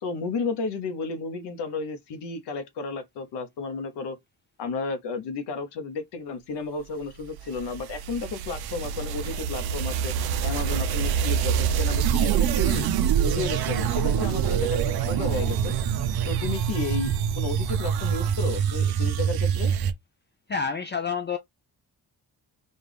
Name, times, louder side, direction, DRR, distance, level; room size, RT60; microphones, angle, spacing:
voice 1, 0.0-4.2 4.6-10.1 10.4-12.9 13.2-15.8 16.3-19.7, left 4 dB, 85° left, 1.0 m, -32 dB
sound 1, 7.1-19.9, right 8 dB, 65° right, 0.7 m, -25 dB
voice 2, 20.5-21.4, left 5 dB, 30° left, 0.4 m, -28 dB
4.3 x 2.5 x 3.4 m
cardioid pair, 115°, 40 cm